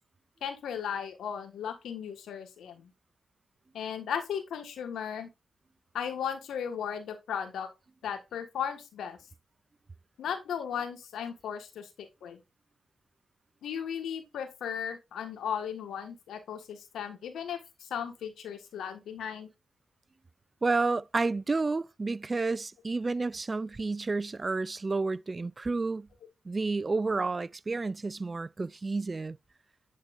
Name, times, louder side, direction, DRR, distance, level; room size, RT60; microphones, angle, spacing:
voice 1, 0.4-2.9 3.7-5.3 5.9-7.7 8.0-9.2 10.2-12.4 13.6-19.5, left 8 dB, 80° left, 1.4 m, -36 dB
voice 2, 20.6-26.1 26.5-29.4, right 3 dB, 40° right, 0.3 m, -30 dB
10.0 x 4.3 x 2.5 m
supercardioid pair, 45°, 0 cm